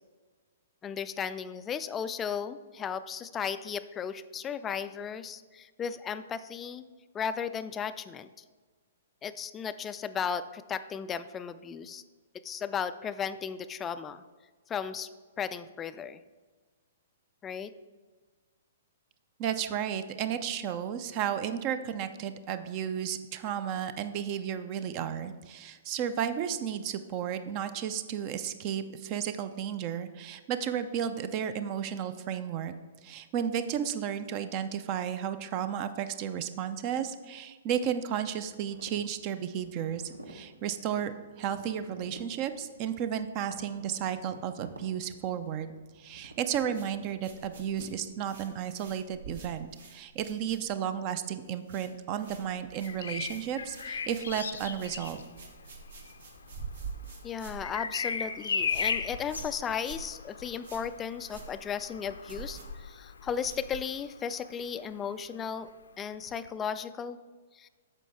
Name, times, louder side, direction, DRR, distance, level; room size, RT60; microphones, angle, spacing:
voice 1, 0.8-6.9 7.1-8.4 9.2-12.0 12.3-14.2 14.7-15.1 15.4-16.2 17.4-17.7 57.2-65.7 66.0-67.2 67.5-67.7, left 7 dB, 15° left, 12 dB, 0.3 m, -35 dB
voice 2, 19.4-32.7 33.0-45.7 46.0-55.3, right 9 dB, 35° right, 11 dB, 0.5 m, -33 dB
sound 1, 38.3-48.8, right 1 dB, 80° right, 1.1 m, -51 dB
sound 2, 46.7-51.0 51.3-51.9 52.2-64.1, right 5 dB, 60° right, 1.4 m, -47 dB
Bird vocalization bird call bird song, 52.7-64.5 66.3-66.5, left 6 dB, 65° left, 0.6 m, -37 dB
9.1 x 6.6 x 3.5 m, 1.4 s
figure-of-eight pair, 115°, 0 cm